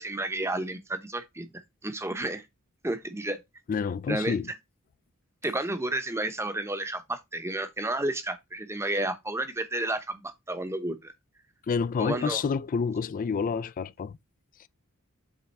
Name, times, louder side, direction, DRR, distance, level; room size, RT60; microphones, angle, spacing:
voice 1, 0.0-2.5 2.8-3.4 4.1-4.4 5.4-11.1 12.0-12.4, right 2 dB, 10° right, 0.8 m, -31 dB
voice 2, 3.7-4.5 11.7-14.2, left 5 dB, 40° left, 0.3 m, -28 dB
7.9 x 3.5 x 4.1 m
head